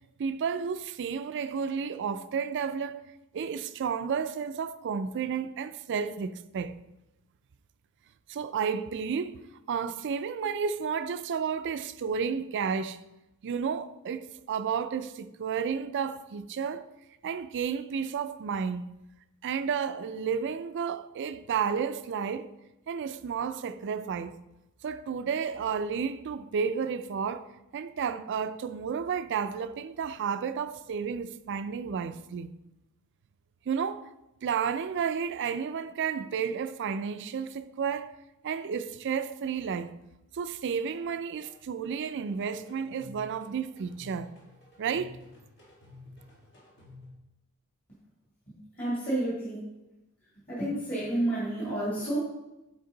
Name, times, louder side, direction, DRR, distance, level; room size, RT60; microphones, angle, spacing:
voice 1, 0.2-3.0 3.3-6.7 8.3-9.4 9.7-13.0 13.4-16.9 17.2-18.8 19.4-22.5 22.9-24.3 24.8-32.6 33.7-34.1 34.4-38.2 38.4-39.9 40.3-44.3 44.8-45.2, right 6 dB, 55° right, 0.4 m, -32 dB
sound 1, 40.9-41.0 41.4-47.1, left 2 dB, 55° left, 1.7 m, -52 dB
voice 2, 48.5-49.8 50.5-52.2, right 1 dB, 35° left, 2.6 m, -30 dB
7.7 x 4.5 x 3.9 m
head